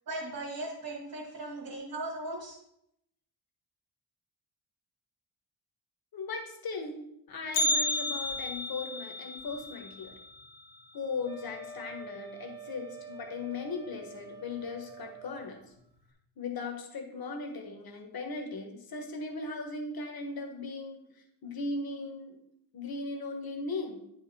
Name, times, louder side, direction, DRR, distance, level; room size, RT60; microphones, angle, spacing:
voice 1, 0.1-2.6, right 2 dB, 50° right, -4 dB, 1.8 m, -38 dB
voice 2, 6.1-7.0 7.3-10.2 10.9-15.6 16.4-21.0 21.4-22.3 22.7-24.0, left 3 dB, 50° left, 4 dB, 1.3 m, -38 dB
Bell, 7.5-11.6 11.9-12.0 12.5-12.6 13.4-13.5 14.2-14.5 14.9-15.0, left 1 dB, 70° left, 1.4 m, -33 dB
Wind instrument woodwind instrument, 11.2-15.5, right 4 dB, 10° right, 0.9 m, -46 dB
9.7 x 5.1 x 4.2 m, 0.78 s
wide cardioid pair, 170°, 45 cm